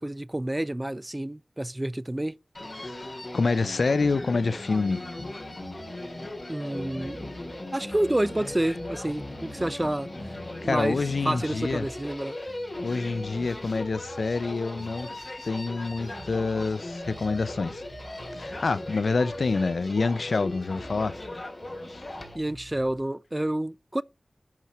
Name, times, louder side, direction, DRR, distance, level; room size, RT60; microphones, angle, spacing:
voice 1, 0.0-2.3 6.5-7.3 7.7-10.1 10.6-11.0 11.2-12.4 22.3-24.0, right 1 dB, 20° right, 0.4 m, -29 dB
Human voice, 2.5-22.4, left 1 dB, 50° left, 3.2 m, -38 dB
voice 2, 2.8-5.1 10.6-11.9 12.8-15.1 15.4-17.8 18.3-21.2 21.9-22.0, left 4 dB, 90° left, 0.5 m, -27 dB
sound 1, 4.7-11.0 11.3-15.6 15.9-20.2 20.5-23.0, right 2 dB, 65° right, 1.2 m, -49 dB
10.5 x 4.3 x 4.6 m
wide cardioid pair, 60°, 0 cm